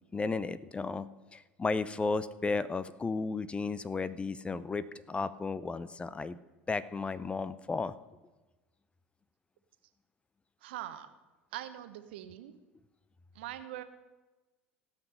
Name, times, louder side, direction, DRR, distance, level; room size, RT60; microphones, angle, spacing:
voice 1, 0.1-6.4 6.7-7.9, left 4 dB, 15° left, 16 dB, 0.5 m, -34 dB
voice 2, 10.6-11.1 11.5-12.6 13.3-13.8, right 13 dB, 65° right, 9 dB, 1.0 m, -42 dB
16.5 x 5.9 x 6.8 m, 1.2 s
figure-of-eight pair, 70°, 6 cm